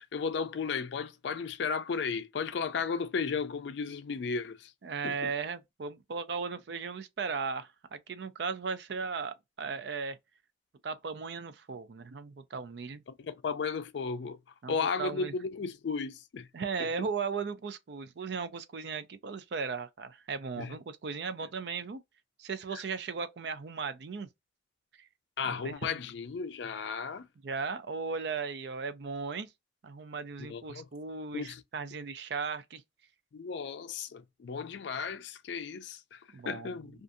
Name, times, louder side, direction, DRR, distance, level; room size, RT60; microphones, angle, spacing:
voice 1, 0.0-4.7 5.0-5.3 13.2-14.4 14.7-16.5 16.8-16.9 20.6-20.7 22.7-22.8 25.4-27.2 30.4-30.9 31.3-31.6 33.3-36.2 36.5-37.0, left 5 dB, 70° left, 0.4 m, -34 dB
voice 2, 4.8-10.2 10.8-13.0 14.6-15.3 16.5-22.0 22.4-24.3 25.5-25.9 27.4-29.5 29.8-32.8 36.3-36.8, right 5 dB, 60° right, 0.4 m, -37 dB
2.5 x 2.4 x 2.5 m
head